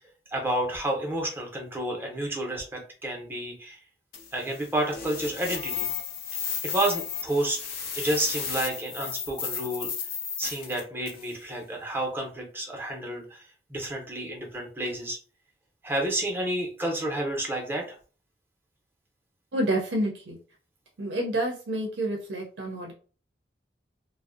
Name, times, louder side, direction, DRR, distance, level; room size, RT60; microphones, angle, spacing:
voice 1, 0.3-3.8 4.3-5.9 6.6-7.6 8.0-9.9 10.4-15.2 15.8-18.0, right 1 dB, 10° right, 1 dB, 0.6 m, -30 dB
sound 1, 4.1-11.3, left 7 dB, 55° left, 0.5 m, -34 dB
voice 2, 19.5-20.4 21.0-22.9, right 1 dB, 80° right, 0 dB, 0.5 m, -28 dB
2.5 x 2.0 x 2.5 m, 0.38 s
head